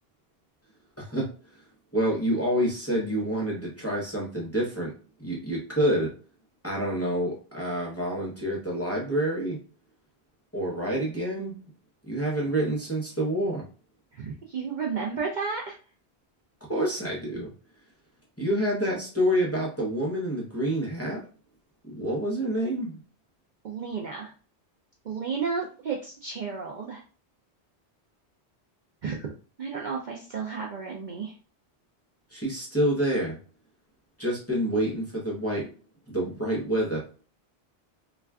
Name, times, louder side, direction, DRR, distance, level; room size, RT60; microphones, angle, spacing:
voice 1, 1.0-1.3 1.9-4.9 5.2-6.1 6.6-9.6 10.5-11.6 12.0-13.6 16.7-17.5 18.4-21.2 21.9-23.0 32.3-33.4 34.2-35.7 36.1-37.0, right 1 dB, 15° left, -4 dB, 0.7 m, -27 dB
voice 2, 14.1-15.7 23.6-24.3 25.0-27.0 29.0-29.3 29.6-31.3, right 5 dB, 55° right, -1 dB, 0.5 m, -32 dB
2.4 x 2.2 x 3.4 m, 0.36 s
omnidirectional pair, 1.1 m